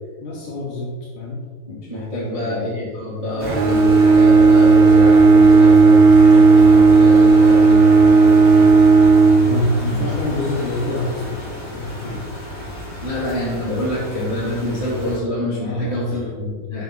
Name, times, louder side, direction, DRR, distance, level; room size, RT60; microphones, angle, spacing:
voice 1, 0.2-1.4 2.1-2.8 9.4-12.3 15.6-16.3, left 2 dB, 75° left, -4 dB, 1.8 m, -26 dB
voice 2, 1.6-8.6 9.9-10.1 13.0-16.8, left 1 dB, 15° right, -9 dB, 1.4 m, -26 dB
sound 1, 3.4-15.2, left 1 dB, 25° left, 1.3 m, -32 dB
Bowed string instrument, 3.4-10.1, right 4 dB, 75° right, 2.4 m, -11 dB
8.7 x 7.2 x 4.0 m, 1.5 s
omnidirectional pair, 5.5 m